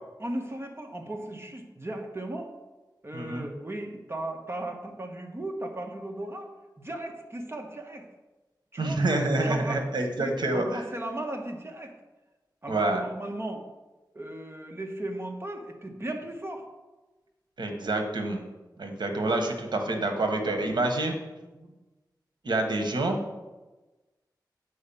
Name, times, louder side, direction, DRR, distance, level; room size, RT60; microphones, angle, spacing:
voice 1, 0.2-2.5 3.0-6.5 6.8-8.1 8.7-9.0 9.4-9.9 10.2-11.9 12.6-13.6 14.1-16.6 21.5-21.7, right 1 dB, 35° right, 3 dB, 1.5 m, -36 dB
voice 2, 3.1-3.4 8.8-10.8 12.7-13.0 17.6-18.4 18.8-21.1 22.4-23.2, right 2 dB, 75° right, 4 dB, 1.4 m, -27 dB
8.5 x 4.8 x 7.1 m, 1.1 s
wide cardioid pair, 60°, 8 cm